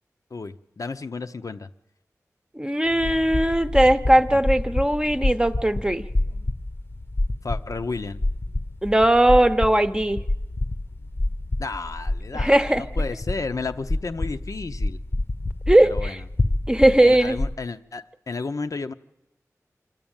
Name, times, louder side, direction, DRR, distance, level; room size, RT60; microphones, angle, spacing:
voice 1, 0.3-1.7 7.4-8.2 11.6-15.0 15.9-16.2 17.0-18.9, left 4 dB, 70° left, 9 dB, 0.8 m, -32 dB
voice 2, 2.5-6.0 8.8-10.2 12.3-12.8 15.7-16.2 16.7-17.4, right 1 dB, 15° right, 9 dB, 0.9 m, -19 dB
sound 1, 2.9-17.5, left 1 dB, 40° left, 0.9 m, -28 dB
26.0 x 13.0 x 9.0 m, 0.92 s
wide cardioid pair, 80°, 6 cm